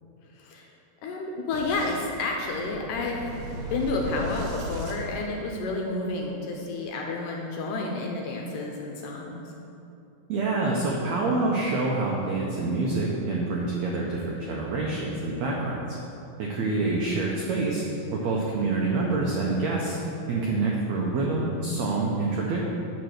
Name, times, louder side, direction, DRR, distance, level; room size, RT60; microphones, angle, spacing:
voice 1, 0.3-0.7 1.0-3.3 3.7-9.4, left 3 dB, 75° left, 0 dB, 2.1 m, -30 dB
Boom, 1.5-5.9, right 1 dB, 70° right, 1.9 m, -37 dB
voice 2, 10.3-15.8 16.4-17.8 18.1-20.0 20.3-22.6, right 3 dB, 90° right, -2 dB, 1.5 m, -26 dB
9.0 x 4.1 x 6.4 m, 2.8 s
omnidirectional pair, 4.2 m